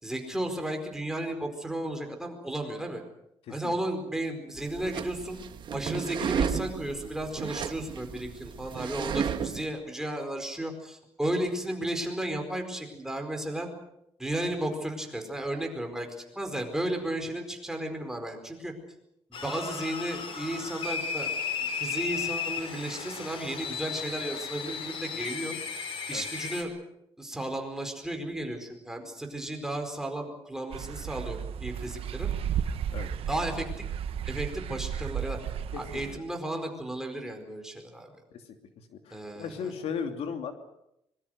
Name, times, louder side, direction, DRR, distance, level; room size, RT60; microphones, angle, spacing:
voice 1, 0.0-3.0 3.5-5.4 5.7-13.7 14.2-16.1 16.3-18.7 19.3-21.3 21.7-25.5 26.1-26.7 27.2-32.3 33.3-33.7 34.2-35.4 35.7-38.1 39.1-39.7, right 1 dB, 5° right, 4 dB, 4.6 m, -34 dB
sound 1, 4.6-9.7, right 7 dB, 50° right, 1.5 m, -33 dB
sound 2, 19.3-26.6, left 6 dB, 60° left, 4.6 m, -35 dB
sound 3, 30.7-36.2, right 9 dB, 70° right, 1.2 m, -34 dB
voice 2, 38.9-40.5, left 6 dB, 75° left, 5 dB, 2.9 m, -36 dB
25.0 x 22.5 x 6.5 m, 0.80 s
cardioid pair, 135°, 10 cm